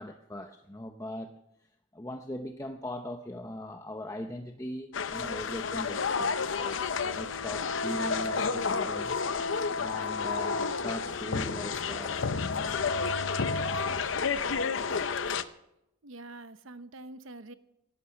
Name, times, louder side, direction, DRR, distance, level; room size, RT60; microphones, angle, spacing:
voice 1, 0.0-1.3 1.9-6.8 7.1-9.2 9.7-13.0, left 1 dB, 15° left, 5 dB, 0.7 m, -40 dB
sound 1, 4.9-15.4, left 5 dB, 70° left, 0.7 m, -30 dB
sound 2, 9.0-11.3, equal, ahead, 5.7 m, -62 dB
voice 2, 16.0-17.5, right 2 dB, 80° right, 12 dB, 1.0 m, -45 dB
16.5 x 11.0 x 6.3 m, 0.86 s
head